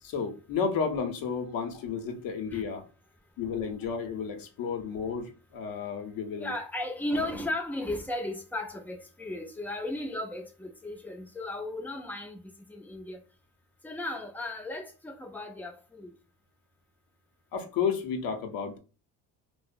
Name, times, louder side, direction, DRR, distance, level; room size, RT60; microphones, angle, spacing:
voice 1, 0.0-2.8 3.4-6.5 7.1-7.2 17.5-18.8, left 6 dB, 65° left, 0.7 m, -32 dB
voice 2, 6.4-12.4 12.7-13.2 13.8-16.1, left 1 dB, 5° left, 0.4 m, -35 dB
2.7 x 2.0 x 2.4 m
cardioid pair, 110°, 37 cm